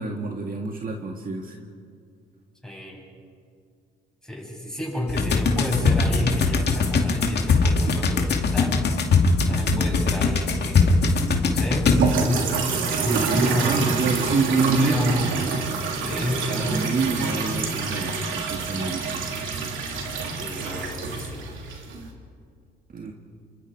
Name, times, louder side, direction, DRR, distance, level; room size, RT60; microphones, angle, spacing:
voice 1, 0.0-1.6 9.7-10.2 12.9-15.2 16.7-19.3 22.9-23.1, right 3 dB, 45° right, 2 dB, 2.0 m, -27 dB
voice 2, 2.6-3.0 4.2-8.8 9.5-11.0 11.4-12.5 13.0-13.8 14.6-15.2 16.1-16.8 20.3-21.5, left 1 dB, 5° left, -3 dB, 7.9 m, -30 dB
sound 1, 5.1-12.4, left 4 dB, 55° left, 2.5 m, -21 dB
sound 2, 11.9-22.1, right 4 dB, 75° right, 3.1 m, -27 dB
29.0 x 25.5 x 4.9 m, 2.2 s
cardioid pair, 90°, 20 cm